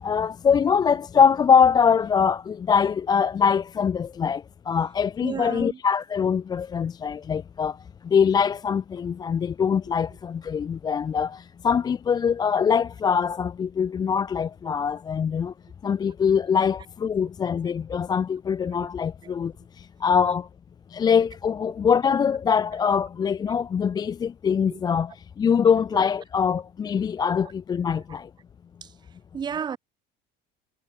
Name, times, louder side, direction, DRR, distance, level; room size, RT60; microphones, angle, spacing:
voice 1, 0.0-7.8 8.0-15.5 15.8-20.5 20.9-28.3, left 7 dB, 20° left, 0.5 m, -23 dB
voice 2, 5.2-5.8 19.2-19.3 24.7-24.8 27.9-28.0 28.8-28.9 29.3-29.8, right 7 dB, 20° right, 1.0 m, -32 dB
cardioid pair, 175°, 21 cm